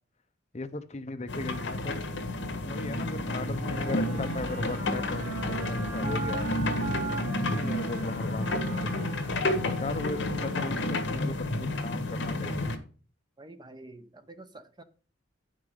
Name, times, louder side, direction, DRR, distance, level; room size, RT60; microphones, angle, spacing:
voice 1, 0.5-2.0 2.6-6.5 7.4-9.1 9.7-12.7, left 2 dB, 35° left, 0.7 m, -37 dB
sound 1, 1.3-12.8, left 2 dB, 70° left, 1.6 m, -31 dB
sound 2, 3.5-11.0, right 3 dB, 85° right, 3.0 m, -39 dB
voice 2, 13.4-14.8, right 1 dB, 20° right, 0.7 m, -48 dB
9.5 x 6.1 x 4.8 m
head